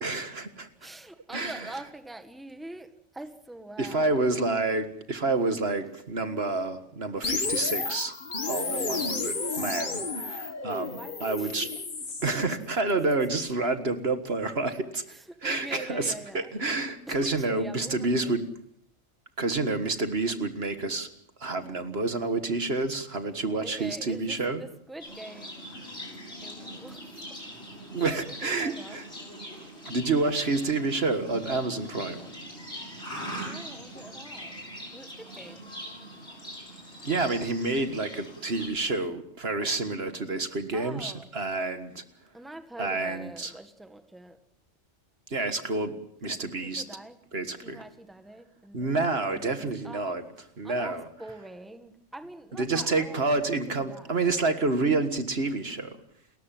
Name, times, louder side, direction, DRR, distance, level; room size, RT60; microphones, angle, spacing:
voice 1, 0.0-0.7 1.3-1.6 3.8-8.1 8.4-11.7 12.2-15.0 15.4-18.5 19.4-21.1 21.4-24.6 27.9-29.1 29.9-32.2 37.0-42.0 42.8-43.5 45.3-46.8 47.3-47.8 48.7-50.2 50.6-51.1 52.6-56.0, right 3 dB, 60° right, 8 dB, 1.9 m, -29 dB
voice 2, 0.8-4.2 5.4-5.6 10.7-11.8 12.2-12.4 15.1-16.5 17.1-18.4 23.6-25.6 26.4-27.4 27.9-28.1 28.4-29.0 33.3-34.6 34.9-35.7 40.7-41.3 42.3-44.4 46.4-47.2 47.6-50.2 50.6-53.3 53.9-54.3, right 1 dB, ahead, 7 dB, 1.7 m, -45 dB
sound 1, 7.2-12.3, left 3 dB, 45° left, 1.8 m, -31 dB
Livestock farm animals working animals, 25.0-38.7, equal, 65° left, 7.3 m, -42 dB
29.5 x 14.0 x 7.5 m, 0.66 s
omnidirectional pair, 1.2 m